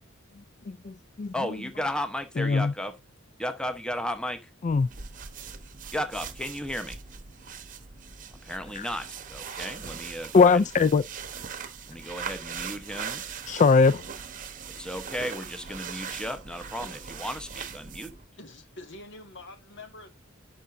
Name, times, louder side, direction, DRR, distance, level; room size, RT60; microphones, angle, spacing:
voice 1, 0.7-1.3 2.4-2.7 4.6-4.9 10.3-11.0 13.5-14.0, left 4 dB, 35° left, 0.3 m, -20 dB
voice 2, 1.3-3.0 3.4-4.5 5.9-7.0 8.4-10.6 11.9-13.2 14.8-18.2, equal, 5° left, 1.0 m, -34 dB
sound 1, 4.7-18.3, right 6 dB, 40° right, 1.0 m, -40 dB
voice 3, 18.4-20.1, left 2 dB, 60° left, 1.9 m, -45 dB
11.0 x 5.8 x 2.6 m
head